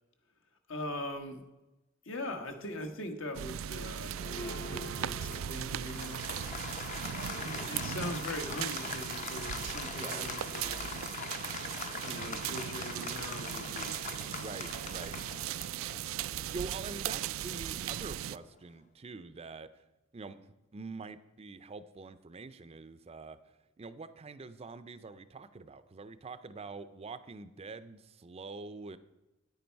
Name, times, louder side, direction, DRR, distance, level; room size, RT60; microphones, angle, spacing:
voice 1, 0.7-1.4 2.0-6.2 7.4-11.0 12.0-14.0, left 1 dB, 75° left, 5 dB, 1.4 m, -41 dB
sound 1, 3.3-18.4, right 10 dB, 90° right, 0.3 m, -38 dB
Applause, 4.1-18.5, left 5 dB, 40° left, 0.7 m, -43 dB
voice 2, 9.9-10.4 14.3-15.2 16.5-19.8 20.1-20.4 20.7-23.4 23.8-29.0, right 4 dB, 30° right, 13 dB, 0.5 m, -45 dB
9.4 x 9.3 x 4.5 m, 1.0 s
head